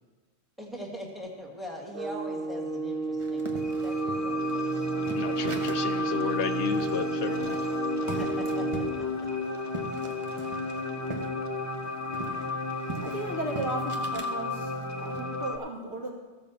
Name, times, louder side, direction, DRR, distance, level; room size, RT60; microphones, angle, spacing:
voice 1, 0.6-4.8 8.2-8.7 9.0-9.3, equal, ahead, -2 dB, 1.7 m, -42 dB
sound 1, 1.9-9.0, right 3 dB, 55° right, 0.9 m, -31 dB
sound 2, 3.2-6.0 6.3-6.4 6.7-11.3 11.6-14.3 14.8-15.2, right 3 dB, 30° right, 0.9 m, -40 dB
sound 3, 3.6-15.6, left 3 dB, 20° left, 0.5 m, -33 dB
voice 2, 5.1-7.6, left 8 dB, 75° left, 10 dB, 0.9 m, -32 dB
voice 3, 12.7-16.1, right 1 dB, 70° right, -3 dB, 2.5 m, -35 dB
14.5 x 5.4 x 6.9 m, 1.3 s
omnidirectional pair, 1.2 m